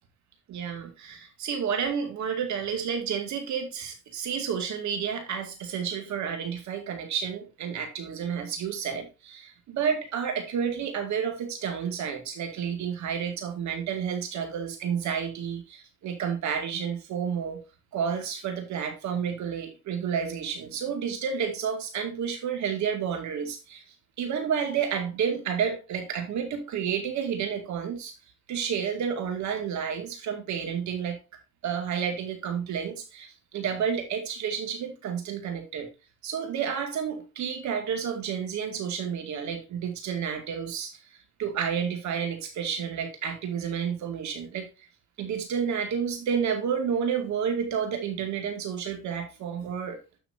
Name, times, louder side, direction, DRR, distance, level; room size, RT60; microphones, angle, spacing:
voice 1, 0.5-17.6 17.9-23.8 24.2-28.1 28.5-31.2 31.6-35.9 36.2-40.9 41.4-44.9 45.2-50.0, right 7 dB, 75° right, 2.2 m, -30 dB
12.0 x 6.0 x 2.7 m
cardioid pair, 105°, 29 cm